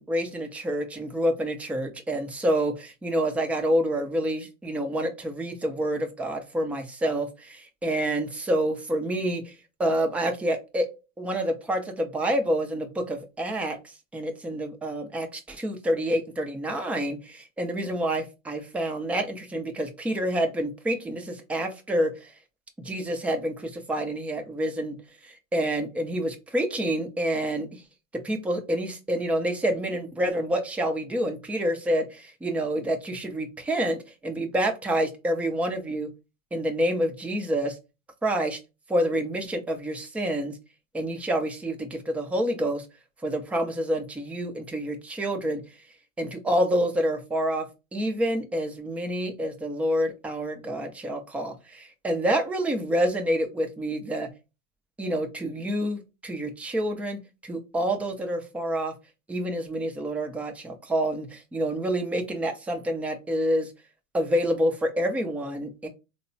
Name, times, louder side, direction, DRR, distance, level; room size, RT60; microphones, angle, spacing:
voice 1, 0.0-9.5 9.8-10.9 11.2-13.8 14.1-22.3 22.8-25.0 25.2-27.8 28.1-36.1 36.5-37.8 38.2-38.6 38.9-40.6 40.9-42.8 43.2-45.6 46.2-54.3 55.0-58.9 59.3-63.7 64.1-65.9, right 1 dB, 5° right, 0.4 m, -28 dB
3.5 x 2.1 x 2.5 m
hypercardioid pair, 105°, 40 cm